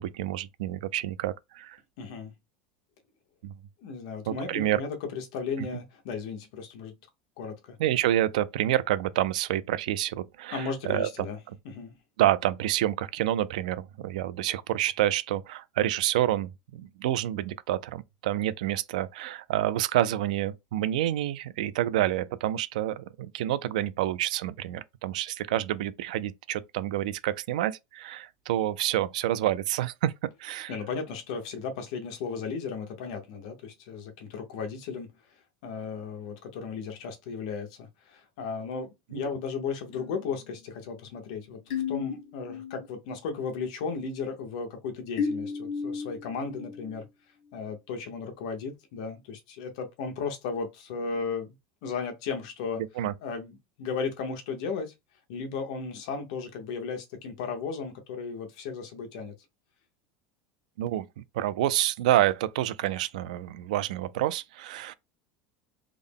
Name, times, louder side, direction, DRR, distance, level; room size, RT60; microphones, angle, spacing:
voice 1, 0.0-1.8 3.4-3.5 4.3-4.8 7.8-11.1 12.2-30.1 30.4-30.7 39.1-39.2 53.0-53.1 60.8-64.9, right 13 dB, 90° right, 0.4 m, -28 dB
voice 2, 2.0-2.3 3.8-6.9 7.4-7.8 10.5-11.4 11.6-12.0 30.7-35.1 35.6-41.6 41.9-47.0 47.5-51.5 51.8-52.8 53.2-54.9 55.3-59.3, left 5 dB, 65° left, 1.0 m, -35 dB
sound 1, 39.9-42.9 43.2-43.6 45.2-47.0, left 6 dB, 85° left, 1.5 m, -35 dB
3.6 x 2.1 x 3.5 m
supercardioid pair, 165°, 4 cm